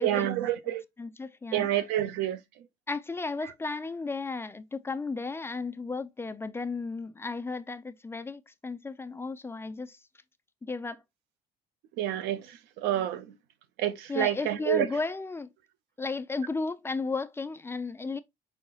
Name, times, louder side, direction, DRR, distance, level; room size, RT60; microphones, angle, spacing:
voice 1, 0.0-0.8 1.5-2.4 12.0-12.5 12.8-13.3 13.8-14.9, right 12 dB, 90° right, 0.6 m, -28 dB
voice 2, 1.0-1.8 2.9-10.0 10.6-11.0 14.1-15.5 16.0-18.2, left 3 dB, 15° left, 0.4 m, -34 dB
4.8 x 4.2 x 2.3 m
cardioid pair, 110°, 17 cm